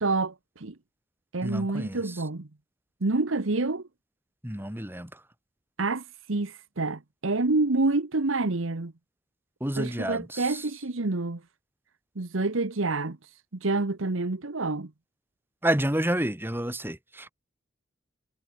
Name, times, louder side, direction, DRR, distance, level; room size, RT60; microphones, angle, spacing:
voice 1, 0.0-0.7 1.3-2.5 3.0-3.9 5.8-6.0 6.3-8.9 9.8-11.4 12.2-13.2 13.5-14.9, right 3 dB, 80° right, 1.2 m, -27 dB
voice 2, 1.4-2.0 4.4-5.1 9.6-10.4 15.6-17.3, right 1 dB, 10° right, 3.6 m, -29 dB
head